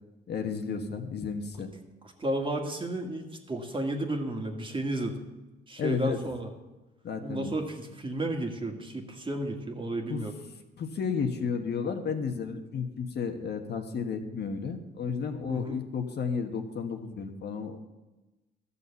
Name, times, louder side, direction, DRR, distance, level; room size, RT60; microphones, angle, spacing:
voice 1, 0.3-1.7 5.8-6.2 7.0-7.5 10.1-10.2 10.8-17.8, left 6 dB, 55° left, 5 dB, 1.4 m, -32 dB
voice 2, 2.0-5.2 5.7-6.5 7.2-10.4 15.5-15.8, right 1 dB, 25° right, 3 dB, 1.9 m, -33 dB
13.0 x 6.9 x 7.1 m, 1.1 s
cardioid pair, 90°, 20 cm